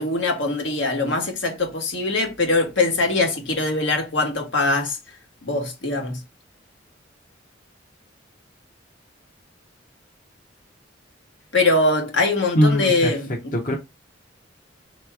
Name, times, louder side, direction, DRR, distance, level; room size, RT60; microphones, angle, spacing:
voice 1, 0.0-5.0 5.4-6.2 11.5-13.5, left 2 dB, 75° left, 1.5 m, -22 dB
voice 2, 12.5-13.1 13.5-13.8, equal, 45° left, 0.9 m, -20 dB
3.4 x 3.0 x 4.7 m
head